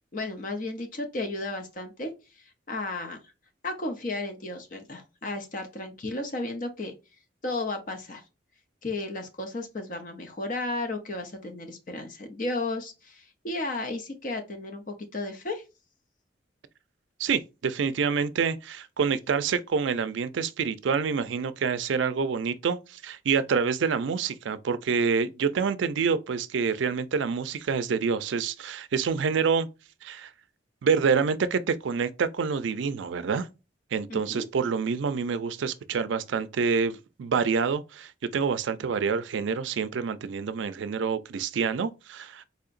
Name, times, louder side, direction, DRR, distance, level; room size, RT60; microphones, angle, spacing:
voice 1, 0.1-2.1 2.7-3.3 3.6-6.9 7.4-8.2 8.8-15.6 34.1-34.5, left 2 dB, 45° left, 0.6 m, -33 dB
voice 2, 17.2-29.7 30.0-30.3 30.8-33.5 33.9-42.4, right 5 dB, 80° right, 0.4 m, -27 dB
4.2 x 2.8 x 2.5 m
head